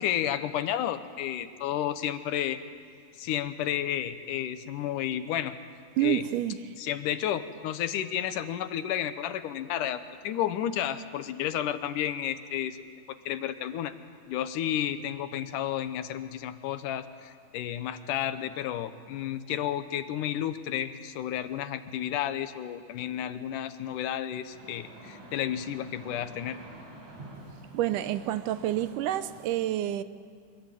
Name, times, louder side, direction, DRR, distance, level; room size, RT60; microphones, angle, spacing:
voice 1, 0.0-2.6 3.2-5.5 6.0-6.3 6.8-12.9 13.3-13.9 14.3-26.6, left 11 dB, 80° left, 2.5 m, -32 dB
voice 2, 6.0-6.6 27.7-30.0, right 13 dB, 80° right, 2.3 m, -28 dB
sound 1, 24.5-29.5, right 1 dB, 60° right, 5.4 m, -48 dB
25.0 x 22.0 x 9.1 m
omnidirectional pair, 3.7 m